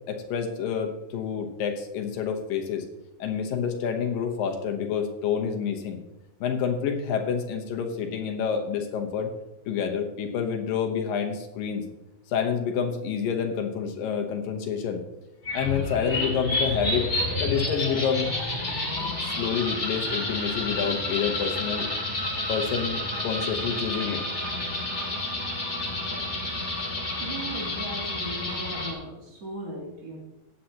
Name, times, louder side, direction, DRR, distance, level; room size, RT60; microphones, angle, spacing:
voice 1, 0.1-2.9 3.2-6.0 6.4-9.3 9.7-11.8 12.3-15.0 15.5-17.1 17.4-18.3 19.2-21.9 22.5-24.2, left 7 dB, 75° left, 3 dB, 2.7 m, -28 dB
sound 1, 15.4-28.9, left 2 dB, 25° left, 2.0 m, -30 dB
voice 2, 27.2-30.2, right 2 dB, 45° right, -4 dB, 3.8 m, -38 dB
15.5 x 10.0 x 2.9 m, 0.96 s
omnidirectional pair, 4.1 m